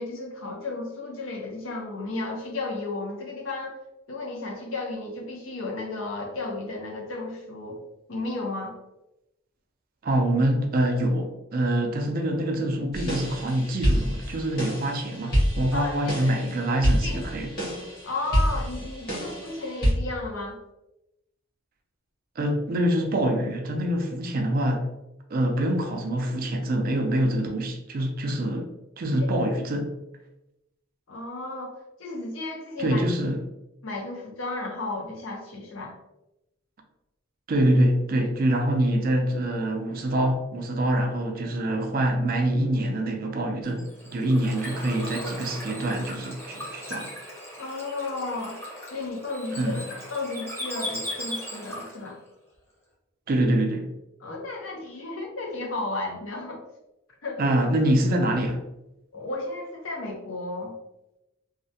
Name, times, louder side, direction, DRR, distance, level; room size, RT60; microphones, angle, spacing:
voice 1, 0.0-3.8 4.1-7.8 8.1-8.7 15.7-16.4 17.0-17.2 18.0-20.6 29.1-29.3 31.1-33.0 33.8-35.9 47.6-48.6 48.9-52.2 54.2-56.6 57.2-57.4 59.1-60.7, left 2 dB, 75° left, 0 dB, 0.6 m, -33 dB
voice 2, 10.0-17.5 22.4-24.8 25.3-28.7 29.0-29.9 32.8-33.4 37.5-43.9 44.1-47.1 49.5-49.8 53.3-53.9 57.4-58.6, right 1 dB, 45° right, 4 dB, 0.4 m, -25 dB
sound 1, 12.9-19.9, equal, 50° left, 1.1 m, -27 dB
Bird / Water, 43.6-52.1, left 1 dB, 10° left, 0.7 m, -37 dB
2.4 x 2.1 x 2.6 m, 0.90 s
head